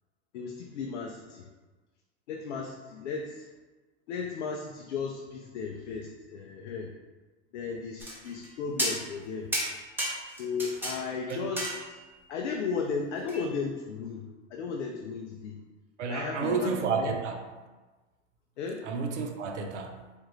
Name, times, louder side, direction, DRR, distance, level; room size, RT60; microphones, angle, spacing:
voice 1, 0.3-1.5 2.3-3.5 4.1-6.9 7.5-9.5 10.4-12.0 12.3-15.6 16.1-17.1 18.6-18.8, left 5 dB, 85° left, 1 dB, 0.5 m, -35 dB
sound 1, 8.0-8.5 8.8-9.3 9.5-11.0 11.3-12.2 13.3-13.4, right 1 dB, 5° right, 0.8 m, -32 dB
voice 2, 16.0-17.4 18.8-20.0, right 5 dB, 90° right, 4 dB, 0.5 m, -31 dB
3.4 x 2.4 x 3.0 m, 1.2 s
hypercardioid pair, 100°, 35 cm